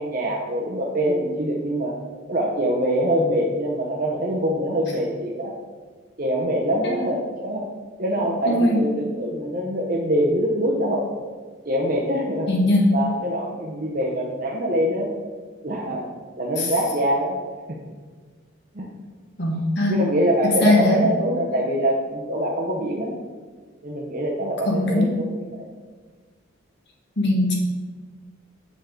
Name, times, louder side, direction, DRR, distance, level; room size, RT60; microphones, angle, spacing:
voice 1, 0.0-1.9 2.3-5.5 6.2-7.7 8.0-11.1 11.7-12.5 12.9-15.1 15.6-16.1 16.4-17.8 18.7-18.9 19.9-23.1 23.8-25.7, equal, 40° right, -2 dB, 0.7 m, -24 dB
voice 2, 8.4-8.8 12.5-12.9 16.6-16.7 19.4-20.0 20.6-21.0 24.6-25.1 27.2-27.5, left 1 dB, 55° left, -1 dB, 1.4 m, -20 dB
7.5 x 5.5 x 3.7 m, 1.5 s
head